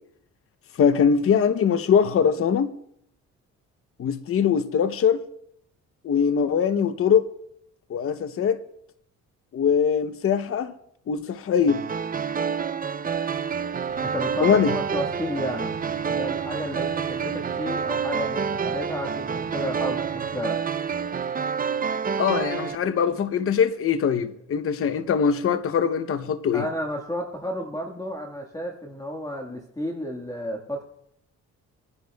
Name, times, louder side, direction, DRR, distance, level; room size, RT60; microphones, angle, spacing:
voice 1, 0.7-2.7 4.0-5.2 6.0-7.3 7.9-8.6 9.5-10.7 11.1-11.8 14.4-14.7 22.2-26.7, left 7 dB, 45° left, 0.7 m, -22 dB
sound 1, 11.7-22.8, right 6 dB, 30° right, 0.5 m, -28 dB
sound 2, 13.9-20.4, right 3 dB, 50° right, 3.3 m, -43 dB
voice 2, 14.0-15.8 16.0-20.6 26.5-30.8, equal, 10° left, 1.6 m, -32 dB
26.0 x 10.5 x 2.3 m
cardioid pair, 90°, 30 cm